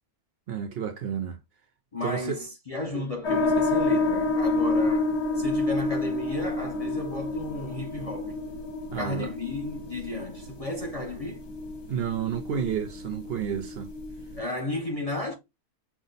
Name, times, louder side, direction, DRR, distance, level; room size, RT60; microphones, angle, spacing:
voice 1, 0.5-1.4 2.0-2.4 2.9-3.0 8.9-9.3 11.9-13.9, right 8 dB, 70° right, 0.6 m, -31 dB
voice 2, 1.9-8.4 9.0-11.4 14.4-15.3, left 2 dB, 50° left, 0.4 m, -33 dB
sound 1, 3.2-14.4, left 2 dB, 75° left, 2.0 m, -29 dB
5.9 x 2.1 x 3.9 m
omnidirectional pair, 1.6 m